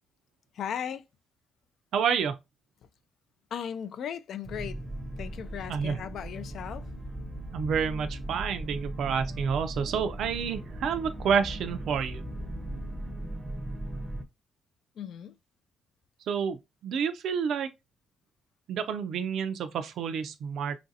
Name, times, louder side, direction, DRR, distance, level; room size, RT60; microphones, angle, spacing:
voice 1, 0.5-1.0 3.5-4.8 5.2-6.9 15.0-15.4, left 8 dB, 70° left, 0.3 m, -37 dB
voice 2, 1.9-2.4 5.7-6.0 7.5-12.2 16.3-16.6 16.8-17.7 18.7-20.8, right 7 dB, 75° right, 0.4 m, -29 dB
sound 1, 4.4-14.2, right 1 dB, 10° right, 0.6 m, -38 dB
3.0 x 2.5 x 2.7 m
cardioid pair, 90°, 0 cm